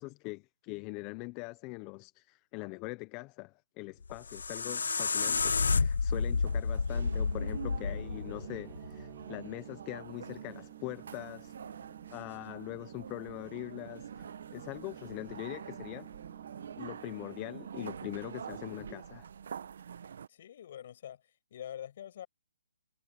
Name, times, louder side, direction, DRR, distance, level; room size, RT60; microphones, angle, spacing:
voice 1, 0.0-11.5 12.1-16.1 16.8-19.3, left 25 dB, 20° left, 0.7 m, -42 dB
sound 1, 4.0-9.1, left 4 dB, 75° left, 0.7 m, -30 dB
sound 2, 6.1-20.3, right 7 dB, 55° right, 1.2 m, -46 dB
sound 3, 7.3-18.8, right 20 dB, 25° right, 3.0 m, -53 dB
voice 2, 20.3-21.2 21.5-22.3, left 10 dB, 45° left, 7.1 m, -44 dB
hypercardioid pair, 160°, 0 cm